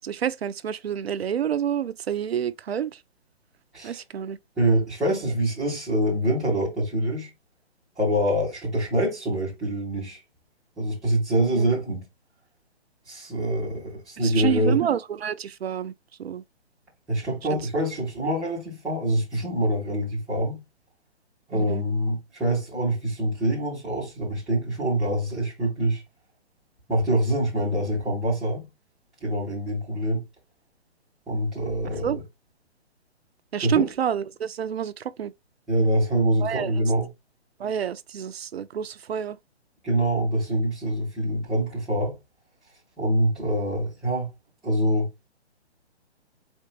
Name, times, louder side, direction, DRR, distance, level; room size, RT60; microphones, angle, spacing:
voice 1, 0.0-3.0 3.8-4.4 11.5-11.7 14.2-15.9 16.2-16.4 17.5-17.6 21.5-21.8 32.0-32.2 33.5-35.3 36.4-36.8 37.6-39.4, right 9 dB, 65° right, 0.5 m, -28 dB
voice 2, 4.6-7.3 8.0-10.2 10.8-12.0 13.1-14.8 17.1-20.6 21.5-26.0 26.9-28.7 29.2-30.2 31.3-32.2 33.6-33.9 35.7-37.1 39.8-42.2 43.0-44.3 44.6-45.1, right 1 dB, ahead, 0.4 m, -25 dB
4.4 x 2.5 x 3.8 m
figure-of-eight pair, 140°, 34 cm